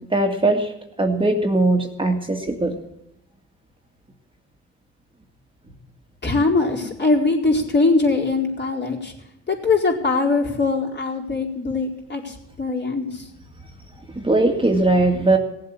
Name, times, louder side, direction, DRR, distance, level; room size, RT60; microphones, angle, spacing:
voice 1, 0.1-0.7 1.0-2.7 14.2-15.4, right 2 dB, 15° right, 3 dB, 2.1 m, -19 dB
voice 2, 6.2-9.1 9.5-13.3, left 3 dB, 35° left, -1 dB, 4.4 m, -21 dB
17.5 x 7.8 x 9.8 m, 0.82 s
cardioid pair, 90°, 30 cm